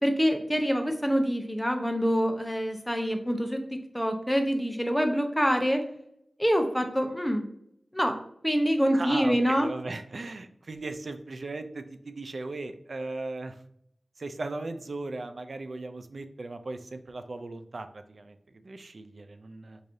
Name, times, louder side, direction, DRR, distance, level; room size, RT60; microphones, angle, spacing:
voice 1, 0.0-5.8 6.4-7.5 7.9-8.2 8.4-9.7, equal, 5° left, 5 dB, 0.6 m, -26 dB
voice 2, 8.9-13.6 14.2-19.8, right 2 dB, 70° right, 8 dB, 0.3 m, -37 dB
4.7 x 2.6 x 2.5 m, 0.71 s
wide cardioid pair, 50°, 0 cm